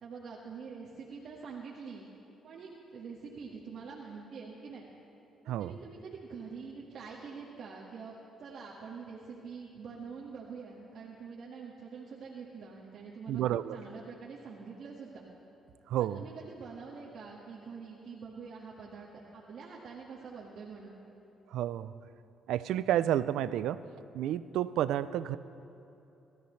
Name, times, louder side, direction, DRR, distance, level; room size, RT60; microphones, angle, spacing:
voice 1, 0.0-2.1 2.4-4.9 5.4-13.4 13.7-15.2 16.0-21.0, right 5 dB, 65° right, -5 dB, 1.7 m, -45 dB
voice 2, 13.3-13.8 15.9-16.2 21.5-21.9 22.5-23.8 24.1-25.4, right 12 dB, 85° right, 15 dB, 0.4 m, -30 dB
25.0 x 13.5 x 3.3 m, 3.0 s
cardioid pair, 90°, 0 cm